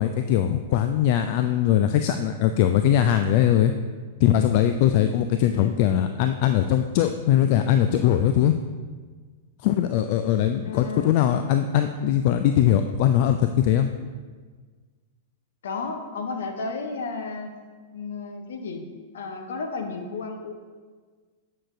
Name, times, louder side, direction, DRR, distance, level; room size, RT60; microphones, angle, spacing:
voice 1, 0.0-3.7 4.2-8.6 9.6-13.9, left 10 dB, 50° left, 8 dB, 0.3 m, -21 dB
voice 2, 10.6-11.1 15.6-17.5 17.9-18.8 19.1-20.5, left 4 dB, 65° left, 5 dB, 0.9 m, -33 dB
8.6 x 6.3 x 2.6 m, 1.5 s
figure-of-eight pair, 100°, 0 cm